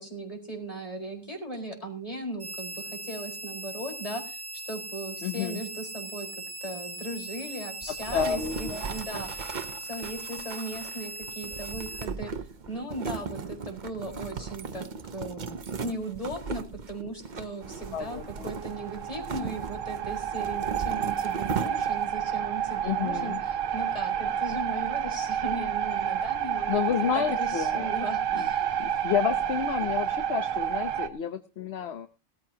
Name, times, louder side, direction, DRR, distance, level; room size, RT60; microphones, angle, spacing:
voice 1, 0.0-6.3 6.6-28.7, right 1 dB, 30° left, 1 dB, 4.7 m, -38 dB
sound 1, 2.4-12.1, right 2 dB, 25° right, 1.2 m, -39 dB
voice 2, 5.2-5.6 8.0-8.8 17.9-18.5 22.8-23.4 26.7-27.9 28.3-28.5 28.8-32.1, left 8 dB, 60° left, 9 dB, 1.0 m, -30 dB
sound 2, 7.8-22.2, right 5 dB, 40° right, 0.9 m, -38 dB
sound 3, 17.6-31.1, right 9 dB, 85° right, 1.4 m, -30 dB
18.5 x 13.5 x 2.8 m, 0.32 s
omnidirectional pair, 1.3 m